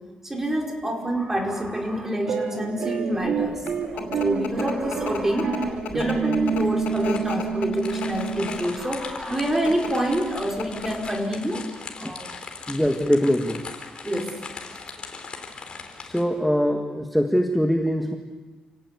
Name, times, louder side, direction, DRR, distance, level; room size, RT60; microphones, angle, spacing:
voice 1, 0.2-3.6 3.9-11.6 12.0-12.3 14.0-14.4, right 1 dB, 15° right, 1 dB, 5.0 m, -27 dB
sound 1, 2.3-8.8, right 6 dB, 70° right, 3.2 m, -28 dB
sound 2, 3.4-8.8 9.5-9.9 10.3-10.4 10.6-11.1, left 6 dB, 85° left, 5.0 m, -34 dB
sound 3, 5.7-16.2, left 4 dB, 40° left, 4.0 m, -39 dB
voice 2, 12.7-13.6 16.0-18.2, equal, ahead, 3 dB, 1.6 m, -23 dB
28.5 x 18.0 x 8.4 m, 1.3 s
cardioid pair, 115°, 2 cm